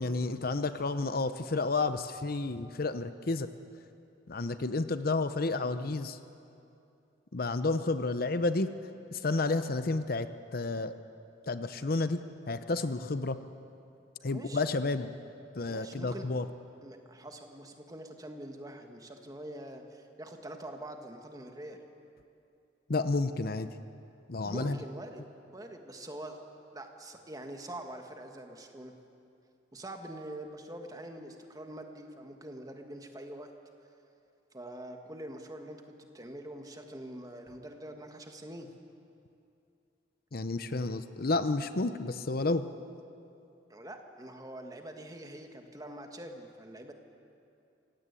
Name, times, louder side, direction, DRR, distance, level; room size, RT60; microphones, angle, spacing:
voice 1, 0.0-3.5 4.3-6.2 7.3-8.7 9.1-10.9 11.5-12.2 12.5-13.4 14.2-15.1 15.5-16.5 22.9-23.7 24.3-24.8 40.3-42.7, left 3 dB, 55° left, 11 dB, 0.8 m, -31 dB
voice 2, 14.2-14.9 15.7-16.2 16.8-21.8 24.4-25.2 25.5-26.4 26.7-28.9 29.7-33.5 34.5-38.7 43.7-46.9, right 1 dB, 20° right, 4 dB, 1.8 m, -44 dB
27.0 x 17.0 x 8.4 m, 2.7 s
head